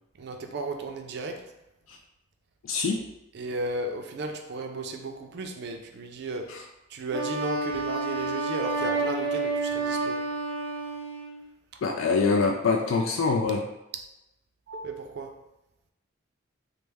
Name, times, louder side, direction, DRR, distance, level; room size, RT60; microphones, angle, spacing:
voice 1, 0.2-1.5 3.3-6.5 6.9-10.2 14.7-15.3, right 2 dB, 55° right, 4 dB, 0.4 m, -34 dB
voice 2, 2.6-3.0 6.5-6.6 11.8-13.6, left 4 dB, 75° left, 2 dB, 0.3 m, -24 dB
Wind instrument woodwind instrument, 7.1-11.4, right 3 dB, 90° right, 0.7 m, -29 dB
3.1 x 2.1 x 3.4 m, 0.91 s
head